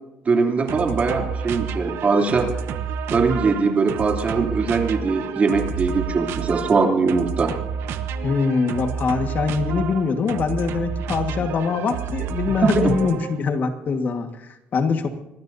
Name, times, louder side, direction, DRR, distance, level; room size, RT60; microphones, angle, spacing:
voice 1, 0.2-2.5 3.1-7.5 12.6-12.9, right 4 dB, 35° right, 2 dB, 3.0 m, -21 dB
sound 1, 0.7-13.4, right 7 dB, 80° right, 1.2 m, -30 dB
voice 2, 8.2-15.1, left 5 dB, 45° left, 7 dB, 1.6 m, -23 dB
25.0 x 19.5 x 2.7 m, 0.91 s
cardioid pair, 125°, 4 cm